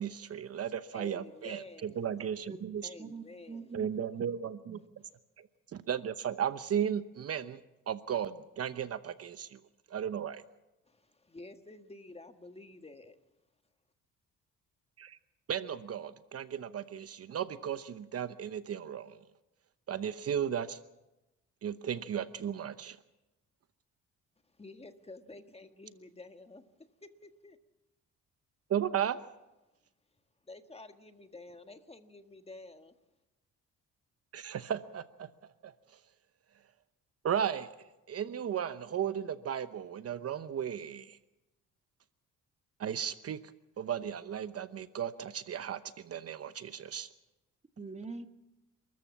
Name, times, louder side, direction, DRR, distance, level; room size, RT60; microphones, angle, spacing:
voice 1, 0.0-2.9 3.7-4.8 5.4-7.6 7.9-9.6 9.9-10.4 15.0-15.2 15.5-19.2 19.9-20.8 21.6-23.0 28.7-29.2 34.3-35.3 35.6-36.0 37.2-41.2 42.8-43.4 43.8-47.1, right 9 dB, 55° right, 0.9 m, -35 dB
voice 2, 0.9-2.0 2.8-3.7 5.0-5.1 10.9-13.2 24.5-26.6 27.0-27.6 30.5-32.9, left 2 dB, 20° left, 1.6 m, -50 dB
voice 3, 3.0-3.9 47.8-48.3, right 4 dB, 25° right, 1.5 m, -43 dB
29.5 x 14.0 x 7.2 m
cardioid pair, 90°, 30 cm